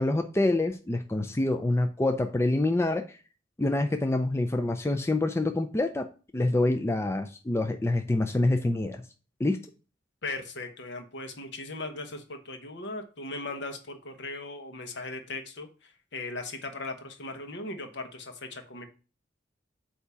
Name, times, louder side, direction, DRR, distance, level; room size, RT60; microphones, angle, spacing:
voice 1, 0.0-3.2 3.6-6.1 6.3-9.0 9.4-9.6, left 2 dB, 15° left, 6 dB, 0.4 m, -26 dB
voice 2, 10.2-15.7 16.1-18.9, left 2 dB, 65° left, 6 dB, 1.1 m, -38 dB
8.2 x 2.9 x 5.6 m, 0.36 s
head